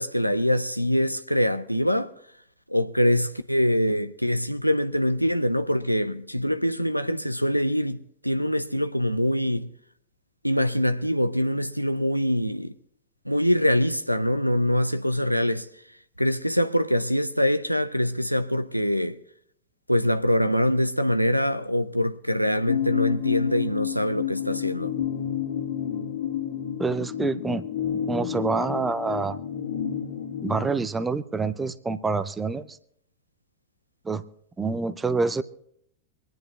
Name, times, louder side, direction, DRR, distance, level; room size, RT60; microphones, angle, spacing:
voice 1, 0.0-2.1 2.7-9.7 10.4-12.7 13.3-15.7 16.2-19.2 19.9-24.9, equal, 90° right, 0.5 m, -24 dB
sound 1, 22.7-30.8, left 9 dB, 60° left, 1.6 m, -30 dB
voice 2, 26.8-27.7 28.1-29.4 30.4-32.8 34.0-34.2 34.6-35.4, right 4 dB, 15° right, 0.5 m, -27 dB
25.5 x 10.5 x 2.4 m
figure-of-eight pair, 90°, 0 cm